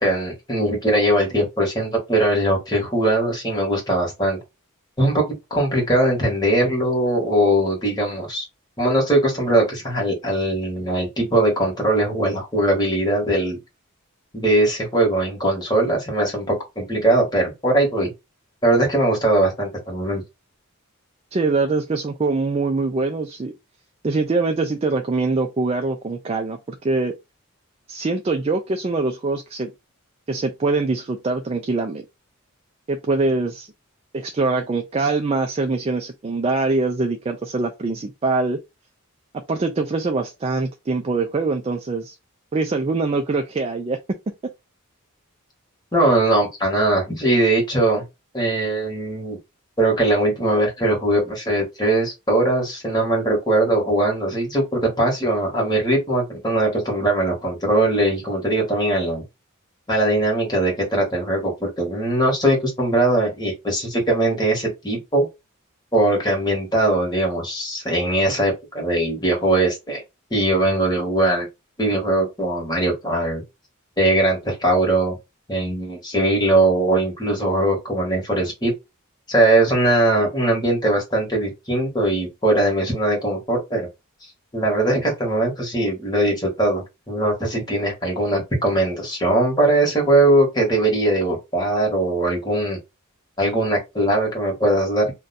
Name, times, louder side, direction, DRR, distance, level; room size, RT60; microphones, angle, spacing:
voice 1, 0.0-4.4 5.0-8.4 8.8-13.6 14.3-18.1 18.6-20.2 45.9-48.0 48.3-49.4 49.8-59.2 59.9-65.3 65.9-70.0 70.3-71.5 71.8-73.4 74.0-75.2 75.5-78.7 79.3-83.9 84.5-92.8 93.4-95.1, right 1 dB, 20° left, 1.4 m, -20 dB
voice 2, 21.3-23.5 24.0-27.1 27.9-29.7 30.3-32.0 32.9-33.7 34.1-38.6 39.5-42.2 42.5-44.2 44.4-44.5, right 3 dB, 25° right, 0.3 m, -23 dB
2.6 x 2.2 x 3.9 m
head